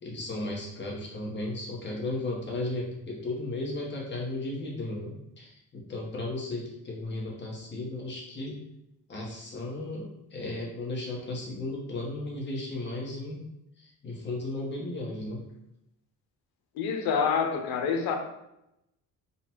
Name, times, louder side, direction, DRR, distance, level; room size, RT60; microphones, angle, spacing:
voice 1, 0.0-8.6 9.1-13.4 13.8-15.4, left 2 dB, 30° left, -3 dB, 1.3 m, -35 dB
voice 2, 16.8-18.2, left 6 dB, 90° left, 5 dB, 0.8 m, -27 dB
4.0 x 2.4 x 4.4 m, 0.84 s
cardioid pair, 140°, 36 cm